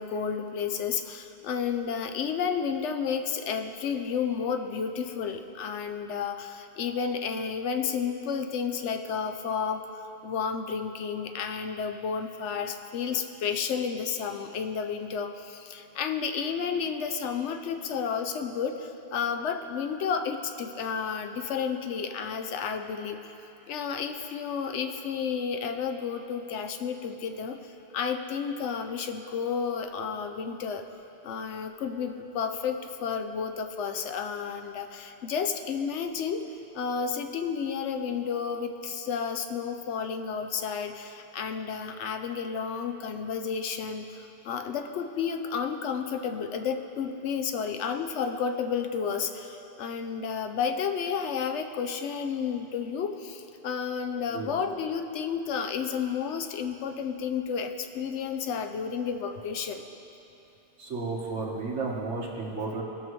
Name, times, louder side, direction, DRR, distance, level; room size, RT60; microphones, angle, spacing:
voice 1, 0.0-23.3 23.7-30.8 31.2-36.4 36.7-59.8, left 6 dB, 80° left, 7 dB, 0.9 m, -31 dB
voice 2, 60.8-62.8, right 3 dB, 90° right, -3 dB, 1.8 m, -33 dB
19.0 x 6.5 x 3.1 m, 3.0 s
omnidirectional pair, 1.2 m